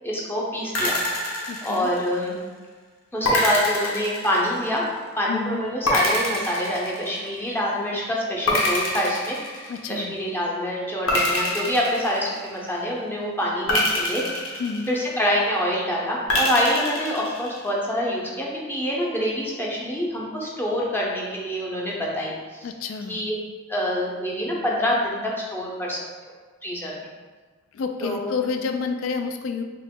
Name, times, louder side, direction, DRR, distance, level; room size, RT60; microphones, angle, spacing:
voice 1, 0.0-1.0 1.6-2.3 3.1-4.8 5.2-14.2 14.9-22.7 23.1-23.3 23.7-26.0 26.6-27.0 28.0-28.3, equal, 10° left, -4 dB, 0.6 m, -26 dB
sound 1, 0.7-2.3 3.2-4.9 5.9-7.6 8.5-10.1 11.1-12.8 13.7-15.4 16.3-17.7, left 1 dB, 85° left, 0.8 m, -25 dB
voice 2, 1.5-1.9 5.3-5.6 9.7-10.1 14.6-14.9 22.6-23.2 27.7-29.6, left 5 dB, 70° left, 6 dB, 0.3 m, -29 dB
3.0 x 2.8 x 3.5 m, 1.4 s
head